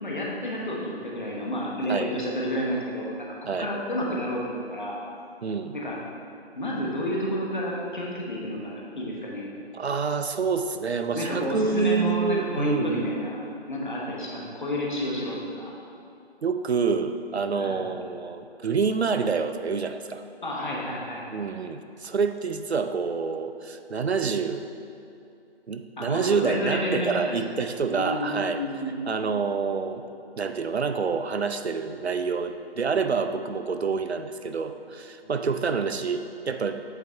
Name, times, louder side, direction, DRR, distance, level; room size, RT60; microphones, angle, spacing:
voice 1, 0.0-5.0 5.7-6.0 6.5-9.5 11.1-13.4 13.7-15.7 17.5-17.9 20.4-21.4 26.0-27.1 27.9-29.1, equal, 50° left, -3 dB, 1.2 m, -30 dB
voice 2, 5.4-5.8 9.7-13.1 16.4-20.2 21.3-24.7 25.7-28.6 29.1-30.0 30.4-36.8, right 5 dB, 80° right, 8 dB, 0.5 m, -27 dB
8.1 x 4.1 x 3.4 m, 2.6 s
figure-of-eight pair, 155°, 32 cm